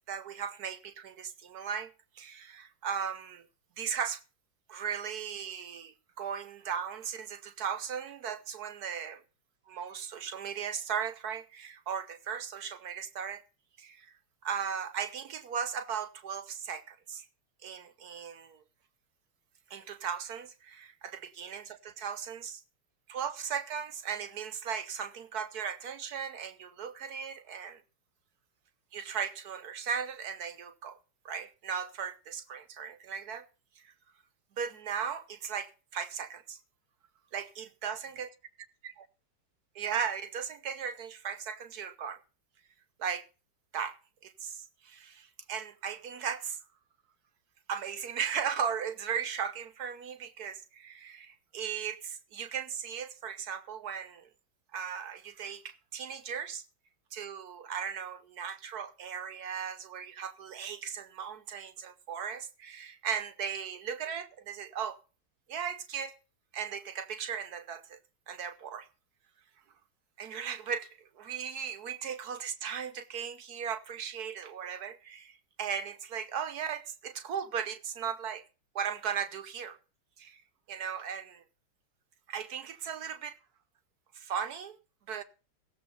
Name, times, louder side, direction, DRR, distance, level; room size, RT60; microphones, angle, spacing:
voice 1, 0.0-3.4 3.8-4.2 4.7-9.2 9.7-13.4 13.8-14.1 14.4-17.3 17.6-18.6 19.7-22.6 23.1-27.8 28.9-31.0 31.2-33.5 34.6-36.6 37.3-38.3 38.8-38.9 39.7-42.2 43.0-43.2 43.7-44.0 44.2-46.6 47.7-54.3 54.7-56.6 57.1-65.0 65.5-66.1 66.5-68.0 68.3-68.9 70.2-70.9 71.2-78.4 78.7-79.8 80.2-80.4 80.7-81.4 82.3-83.3 84.1-84.8 85.1-85.2, right 7 dB, 60° right, 1.1 m, -37 dB
16.5 x 7.1 x 5.3 m
omnidirectional pair, 2.3 m